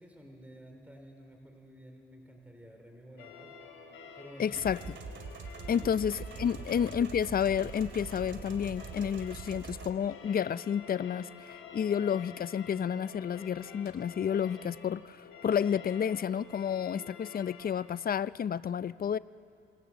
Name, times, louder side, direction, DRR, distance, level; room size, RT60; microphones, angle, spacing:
voice 1, 0.0-3.5 4.2-4.6 5.8-5.9 6.3-6.5, equal, 5° right, 3 dB, 3.7 m, -51 dB
sound 1, 3.2-17.7, left 5 dB, 80° left, 3.2 m, -49 dB
voice 2, 4.4-4.8 5.7-19.2, left 8 dB, 45° left, 17 dB, 0.5 m, -31 dB
sound 2, 4.5-9.9, right 5 dB, 65° right, 2.4 m, -43 dB
27.5 x 26.0 x 7.2 m, 2.6 s
cardioid pair, 80°, 20 cm